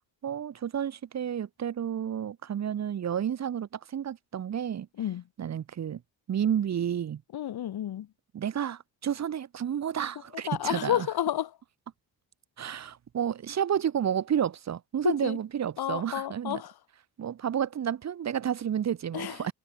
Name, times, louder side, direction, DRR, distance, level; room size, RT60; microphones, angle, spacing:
voice 1, 0.2-4.9 5.4-6.0 6.3-7.2 8.3-11.1 12.6-16.6 17.2-19.5, right 9 dB, 45° right, 0.7 m, -31 dB
voice 2, 7.3-8.1 10.5-11.5 15.0-15.4 15.8-16.7 19.1-19.5, left 11 dB, 65° left, 1.2 m, -30 dB
cardioid pair, 70°, 40 cm